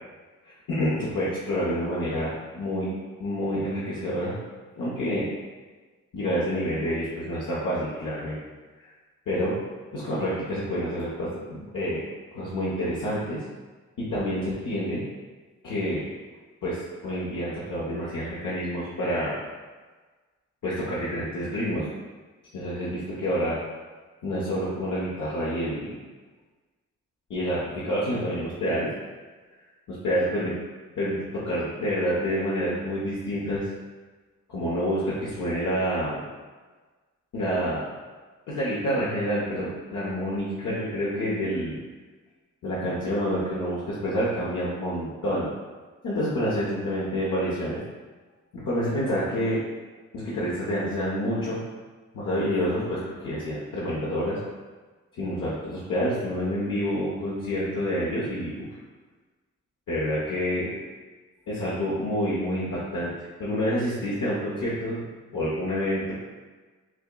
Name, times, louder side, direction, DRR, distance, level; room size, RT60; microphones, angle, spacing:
voice 1, 0.4-2.9 3.2-4.3 4.8-5.3 6.1-8.4 8.8-8.9 9.3-9.6 9.9-12.0 12.3-13.4 14.0-15.0 15.6-16.1 16.6-19.3 20.6-21.9 22.5-23.6 24.2-25.9 27.3-28.9 29.9-30.5 31.0-33.6 34.5-36.2 37.3-37.8 38.5-41.8 42.6-45.5 46.0-47.8 48.5-49.6 50.1-51.6 52.1-54.4 55.1-58.7 59.9-60.7 61.5-63.1 63.4-65.0 65.3-66.1, equal, 80° left, -9 dB, 1.0 m, -28 dB
6.0 x 2.5 x 2.3 m, 1.3 s
cardioid pair, 50°, 32 cm